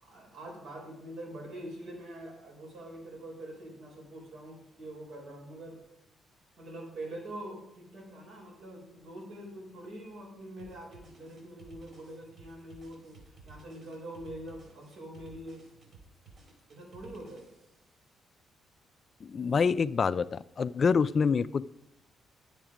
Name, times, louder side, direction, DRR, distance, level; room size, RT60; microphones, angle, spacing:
voice 1, 0.0-5.8 6.6-13.2 13.4-15.6 16.7-17.4, right 1 dB, 75° right, -1 dB, 4.3 m, -44 dB
sound 1, 10.6-17.9, right 3 dB, 50° right, 3.8 m, -55 dB
voice 2, 19.2-21.6, left 5 dB, 45° left, 15 dB, 0.4 m, -26 dB
10.5 x 7.9 x 5.0 m, 0.90 s
cardioid pair, 90°, 0 cm